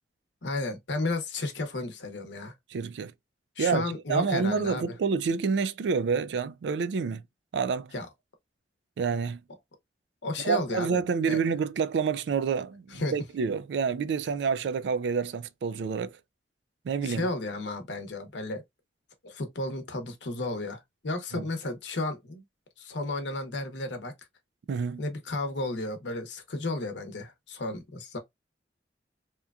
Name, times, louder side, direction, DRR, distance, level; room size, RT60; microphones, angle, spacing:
voice 1, 0.4-2.5 3.6-4.8 7.9-8.1 10.2-11.4 12.9-13.1 17.0-18.6 19.2-22.4 22.8-24.1 25.0-28.2, left 2 dB, 85° left, 0.8 m, -33 dB
voice 2, 2.7-3.1 3.6-7.2 7.5-7.9 9.0-9.4 10.4-16.2 16.8-17.3 21.3-21.5 24.7-25.0, right 5 dB, 75° right, 0.3 m, -28 dB
2.9 x 2.3 x 2.3 m
head